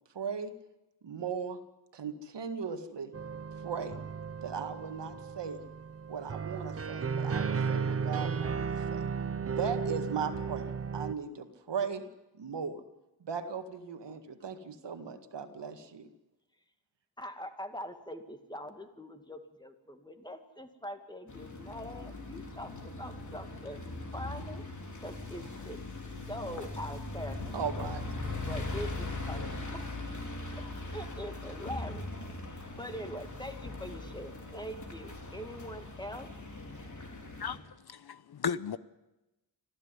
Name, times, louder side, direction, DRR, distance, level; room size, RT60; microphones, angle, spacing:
voice 1, 0.1-0.5 1.0-1.6 1.9-3.1 3.6-4.0 4.4-5.6 6.1-9.1 9.5-12.0 12.3-12.8 13.2-16.1 27.5-28.0 28.5-28.6, right 6 dB, 85° right, 8 dB, 2.0 m, -37 dB
sound 1, 3.1-11.1, right 6 dB, 35° right, 0.7 m, -34 dB
voice 2, 17.2-23.8 24.1-24.6 25.0-25.8 26.3-27.4 27.8-27.9 28.5-32.1 32.5-36.3, equal, 10° left, 7 dB, 2.2 m, -43 dB
sound 2, 21.3-37.6, left 2 dB, 45° left, 4.0 m, -40 dB
voice 3, 37.4-38.8, left 7 dB, 65° left, 16 dB, 0.9 m, -35 dB
25.5 x 15.0 x 9.8 m, 0.98 s
wide cardioid pair, 125°, 41 cm